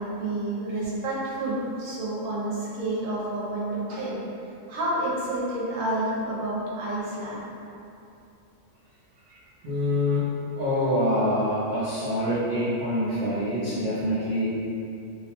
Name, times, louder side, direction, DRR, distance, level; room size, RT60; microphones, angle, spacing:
voice 1, 0.0-4.2 4.7-7.5 9.3-9.4, right 1 dB, 80° right, -6 dB, 1.0 m, -29 dB
voice 2, 9.6-10.3 10.6-14.5, left 1 dB, 60° right, -11 dB, 0.5 m, -25 dB
2.6 x 2.0 x 2.8 m, 2.7 s
omnidirectional pair, 1.4 m